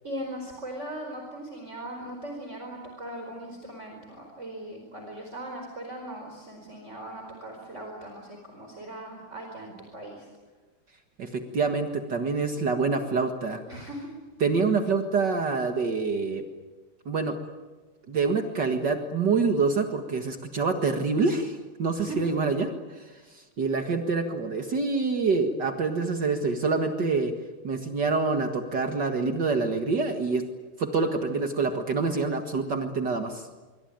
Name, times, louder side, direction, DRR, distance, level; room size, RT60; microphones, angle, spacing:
voice 1, 0.0-10.3 13.7-14.1 22.0-22.2, right 1 dB, 30° right, 2 dB, 4.9 m, -39 dB
voice 2, 11.2-13.6 14.4-16.4 17.1-17.4 18.1-27.3 27.6-30.4 30.8-33.5, right 4 dB, 55° right, 6 dB, 2.3 m, -26 dB
27.0 x 23.5 x 9.4 m, 1.3 s
omnidirectional pair, 2.4 m